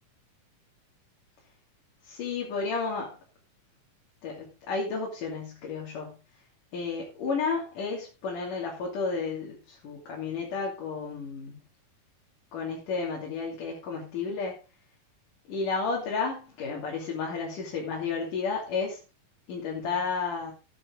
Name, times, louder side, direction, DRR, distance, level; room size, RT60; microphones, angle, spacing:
voice 1, 2.0-3.2 4.2-6.2 6.7-11.6 12.5-14.5 15.5-19.0 19.5-20.5, left 4 dB, 75° left, -2 dB, 4.3 m, -32 dB
14.5 x 9.8 x 3.8 m, 0.32 s
omnidirectional pair, 3.8 m